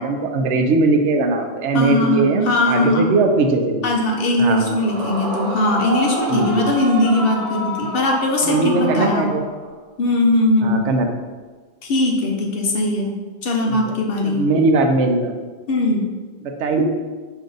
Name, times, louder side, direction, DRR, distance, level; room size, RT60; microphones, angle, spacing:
voice 1, 0.0-3.9 4.4-4.8 6.3-6.6 8.4-9.5 10.6-11.1 13.7-13.9 14.2-15.3 16.6-16.8, right 3 dB, 90° right, 5 dB, 0.9 m, -19 dB
voice 2, 1.7-3.0 3.8-9.3 10.0-10.8 11.8-13.1 13.4-14.4 15.7-16.1, left 2 dB, 60° left, 0 dB, 0.9 m, -19 dB
Yell / Screaming, 4.8-9.7, right 1 dB, 65° right, 1.1 m, -28 dB
5.1 x 2.6 x 3.8 m, 1.4 s
omnidirectional pair, 1.2 m